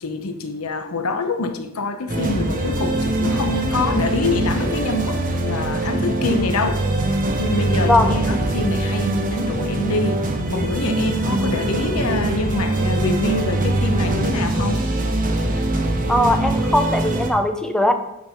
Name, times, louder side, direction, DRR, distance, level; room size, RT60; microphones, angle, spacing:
voice 1, 0.0-6.8 7.4-10.2 10.5-14.9, left 3 dB, 85° left, 8 dB, 0.9 m, -25 dB
sound 1, 2.1-17.3, right 2 dB, 40° right, 1.1 m, -22 dB
voice 2, 7.8-8.1 16.1-17.9, left 1 dB, 5° left, 6 dB, 0.7 m, -19 dB
9.5 x 5.5 x 4.5 m, 0.86 s
head